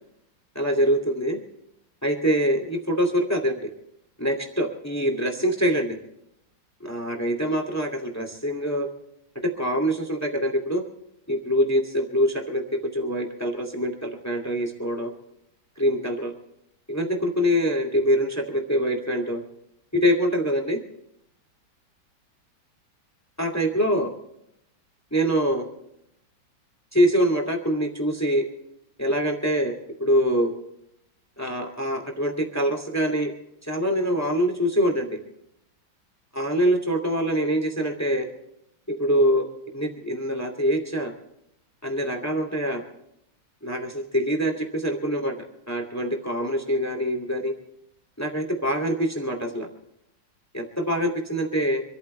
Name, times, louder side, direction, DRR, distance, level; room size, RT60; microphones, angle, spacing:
voice 1, 0.5-1.4 2.0-3.7 4.2-6.0 6.9-8.9 9.4-10.8 11.3-15.1 15.8-16.3 16.9-19.4 19.9-20.8 23.4-24.1 25.1-25.7 26.9-28.4 29.0-29.7 30.0-30.5 31.4-33.3 33.6-35.2 36.3-38.3 39.0-41.1 41.8-42.8 43.6-45.3 45.7-47.5 48.2-49.7 50.5-51.8, equal, 10° left, 4 dB, 2.3 m, -24 dB
26.5 x 14.0 x 3.3 m, 0.78 s
omnidirectional pair, 2.1 m